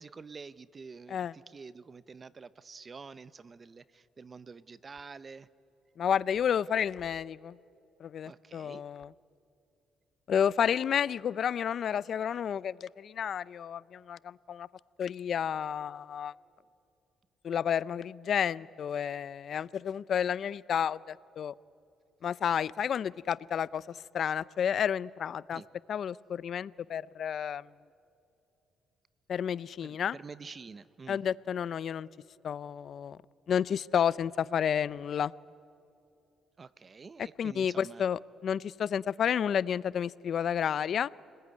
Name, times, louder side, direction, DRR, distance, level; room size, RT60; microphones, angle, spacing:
voice 1, 0.0-5.5 8.2-8.8 25.5-25.7 29.8-31.2 36.6-38.0, right 4 dB, 35° right, 16 dB, 0.8 m, -48 dB
voice 2, 6.0-7.6 8.0-9.1 10.3-14.7 15.0-16.3 17.4-21.5 22.2-25.6 25.9-27.7 29.3-30.2 31.1-32.1 32.4-33.2 33.5-35.3 37.4-41.1, left 8 dB, 60° left, 19 dB, 0.5 m, -31 dB
29.0 x 21.0 x 9.6 m, 2.7 s
cardioid pair, 90°, 0 cm